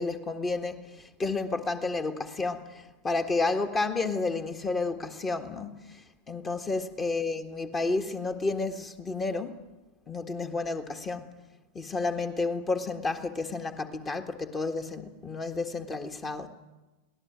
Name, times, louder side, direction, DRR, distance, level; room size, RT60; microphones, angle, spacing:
voice 1, 0.0-9.6 10.1-11.3 11.7-16.5, left 3 dB, 20° left, 1.6 m, -31 dB
23.0 x 18.0 x 8.1 m
figure-of-eight pair, 90°, 0 cm